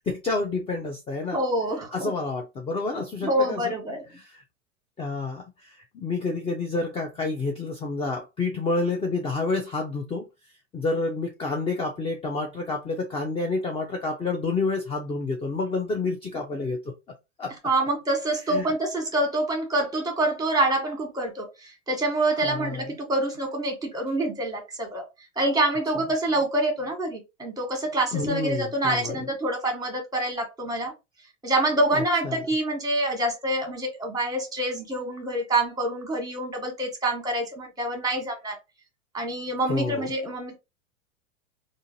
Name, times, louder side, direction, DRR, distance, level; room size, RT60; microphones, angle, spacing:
voice 1, 0.1-1.4 1.9-3.7 5.0-10.3 10.7-16.8 17.4-17.5 18.5-18.6 22.4-22.8 28.1-29.2 31.9-32.4 39.7-40.1, left 3 dB, 15° left, 0.6 m, -29 dB
voice 2, 1.3-2.1 3.2-4.1 17.6-25.0 25.4-30.9 31.4-38.6 39.1-40.6, right 1 dB, 10° right, 1.3 m, -26 dB
3.8 x 2.5 x 2.6 m
figure-of-eight pair, 90°, 37 cm